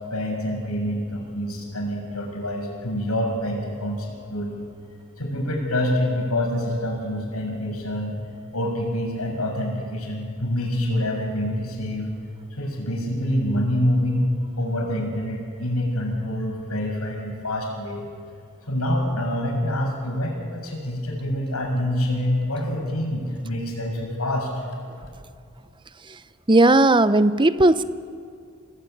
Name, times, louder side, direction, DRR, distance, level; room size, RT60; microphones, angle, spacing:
voice 1, 0.1-4.7 5.2-8.2 8.5-12.1 12.6-14.3 14.6-18.0 18.7-24.5, left 1 dB, 90° left, 2 dB, 6.9 m, -26 dB
voice 2, 26.5-27.8, right 2 dB, 20° right, 13 dB, 0.7 m, -16 dB
28.0 x 19.5 x 9.2 m, 2.3 s
head